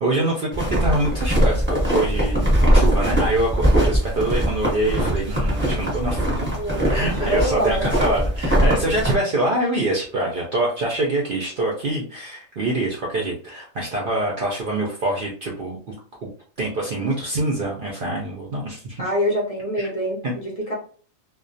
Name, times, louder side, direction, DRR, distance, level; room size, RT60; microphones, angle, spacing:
voice 1, 0.0-6.5 6.8-15.9 16.6-19.0 19.8-19.9 20.2-20.3, right 2 dB, 65° right, -2 dB, 0.5 m, -25 dB
sound 1, 0.5-9.1, equal, 10° right, 0.8 m, -21 dB
voice 2, 6.5-7.9 19.0-20.7, equal, 50° left, -3 dB, 0.4 m, -25 dB
2.2 x 2.2 x 2.5 m, 0.43 s
omnidirectional pair, 1.4 m